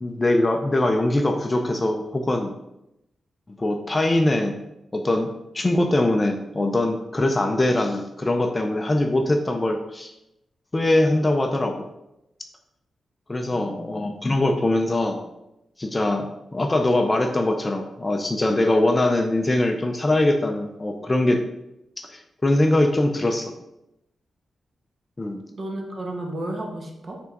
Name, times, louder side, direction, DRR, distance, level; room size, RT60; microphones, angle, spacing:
voice 1, 0.0-2.5 3.6-4.6 4.9-10.1 10.7-11.9 13.3-15.2 15.8-16.3 16.5-21.4 22.0-23.5 25.2-25.4, left 1 dB, 20° left, 4 dB, 0.5 m, -22 dB
voice 2, 13.5-13.9 25.5-27.2, right 1 dB, 40° right, 2 dB, 1.1 m, -33 dB
5.9 x 3.6 x 4.5 m, 0.87 s
wide cardioid pair, 155°, 0 cm